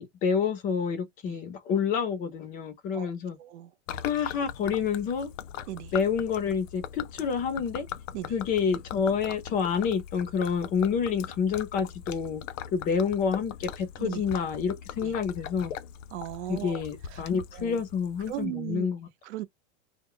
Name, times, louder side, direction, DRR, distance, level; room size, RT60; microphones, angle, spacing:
voice 1, 0.0-3.4 4.0-5.3 5.9-7.9 8.3-12.4 12.7-15.7 16.5-19.1, left 6 dB, 25° left, 0.5 m, -28 dB
voice 2, 3.4-3.7 5.7-5.9 8.1-8.3 14.0-14.2 15.0-15.1 16.1-16.8 17.1-17.3 17.5-17.8 18.3-18.9 19.2-19.4, right 15 dB, 65° right, 0.7 m, -36 dB
Gurgling / Liquid, 3.9-18.5, left 9 dB, 85° left, 0.6 m, -41 dB
2.1 x 2.0 x 3.6 m
supercardioid pair, 155°, 37 cm